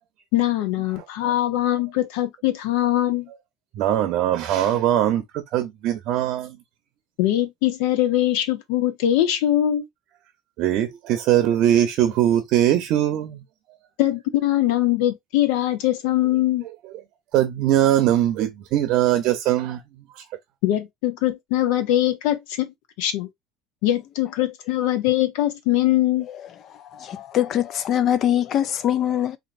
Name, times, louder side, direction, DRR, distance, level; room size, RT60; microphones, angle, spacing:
voice 1, 0.3-3.3 7.2-9.8 14.0-16.7 20.6-22.7 23.0-23.3 23.8-26.3, left 13 dB, 80° left, 0.8 m, -22 dB
voice 2, 3.7-6.6 10.6-13.4 17.3-19.8 20.2-20.3, right 12 dB, 55° right, 0.7 m, -21 dB
voice 3, 26.7-29.4, left 10 dB, 40° left, 0.4 m, -23 dB
4.2 x 2.8 x 2.5 m
cardioid pair, 155°, 0 cm